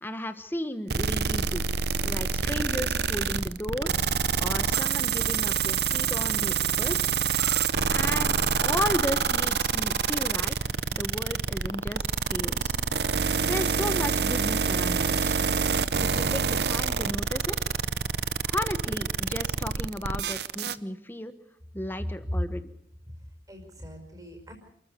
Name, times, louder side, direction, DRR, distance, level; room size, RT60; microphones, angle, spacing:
voice 1, 0.0-1.7 2.0-3.9 4.4-7.2 7.9-12.8 13.4-15.4 16.0-17.6 18.4-21.3 21.7-22.6, left 1 dB, 10° left, 10 dB, 1.2 m, -34 dB
sound 1, 0.9-20.8, right 6 dB, 60° right, 0.7 m, -26 dB
sound 2, 8.1-18.5, equal, 25° left, 3.9 m, -54 dB
voice 2, 22.0-22.4 23.1-24.5, equal, 20° right, 4 dB, 5.3 m, -35 dB
28.0 x 14.5 x 6.8 m, 0.74 s
head